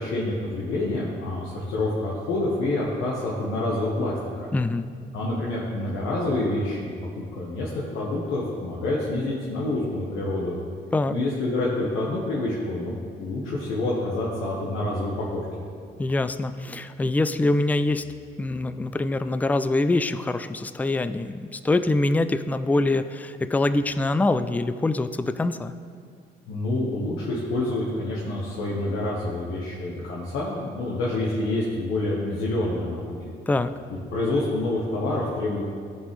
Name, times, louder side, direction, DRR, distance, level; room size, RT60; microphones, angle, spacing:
voice 1, 0.0-4.5 5.1-6.9 7.3-10.5 11.1-12.9 13.2-15.4 26.5-33.3 34.1-35.6, left 2 dB, 90° left, -5 dB, 1.3 m, -27 dB
voice 2, 4.5-4.8 10.9-11.2 16.0-18.0 18.4-25.7 33.5-33.7, left 2 dB, 10° left, 11 dB, 0.3 m, -24 dB
14.5 x 5.2 x 3.2 m, 2.1 s
cardioid pair, 90°, 20 cm